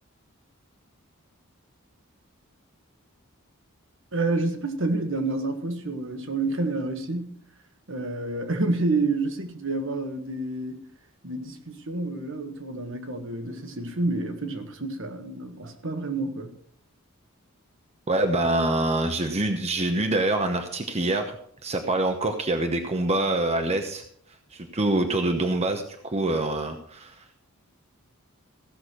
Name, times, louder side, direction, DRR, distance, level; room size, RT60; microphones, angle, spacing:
voice 1, 4.1-7.4 7.9-10.8 11.2-16.5, right 2 dB, 60° right, 6 dB, 1.5 m, -29 dB
voice 2, 18.1-21.4 21.6-24.0 24.5-27.4, right 2 dB, 30° right, 5 dB, 0.9 m, -25 dB
15.5 x 6.3 x 6.2 m, 0.63 s
head